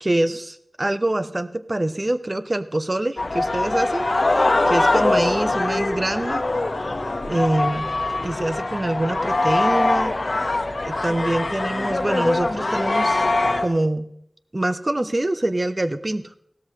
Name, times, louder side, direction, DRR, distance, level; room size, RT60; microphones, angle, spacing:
voice 1, 0.0-4.1 4.7-6.4 7.3-7.9 8.2-10.2 10.8-13.3 13.6-14.1 14.5-16.4, right 1 dB, 40° right, 11 dB, 0.8 m, -25 dB
sound 1, 3.2-13.7, left 2 dB, 60° left, 1.2 m, -22 dB
16.5 x 13.0 x 3.3 m, 0.75 s
wide cardioid pair, 50°, 0 cm